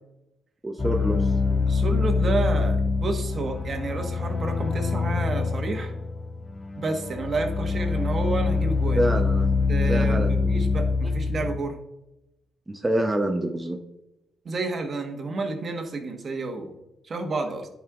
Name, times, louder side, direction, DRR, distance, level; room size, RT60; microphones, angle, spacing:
voice 1, 0.6-1.3 9.0-9.5 9.8-10.5 12.7-13.8, right 1 dB, 15° right, 2 dB, 0.7 m, -26 dB
sound 1, 0.8-11.6, left 4 dB, 20° left, 1.1 m, -25 dB
voice 2, 1.7-5.9 6.8-9.0 9.7-11.8 14.4-16.7 17.0-17.7, right 3 dB, 45° right, 4 dB, 1.3 m, -30 dB
11.0 x 5.2 x 2.4 m, 0.91 s
cardioid pair, 90°, 0 cm